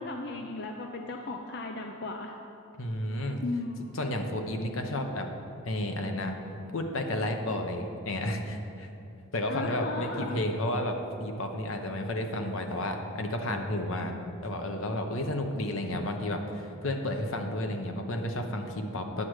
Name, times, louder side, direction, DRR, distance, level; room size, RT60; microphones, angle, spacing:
voice 1, 0.0-2.4 3.4-3.9 9.5-10.4, left 2 dB, 50° left, 3 dB, 0.5 m, -36 dB
voice 2, 2.8-3.4 3.9-5.3 5.6-6.4 6.7-8.9 9.3-14.1 14.4-19.3, left 1 dB, 75° left, 4 dB, 0.9 m, -32 dB
9.7 x 7.5 x 4.8 m, 2.8 s
head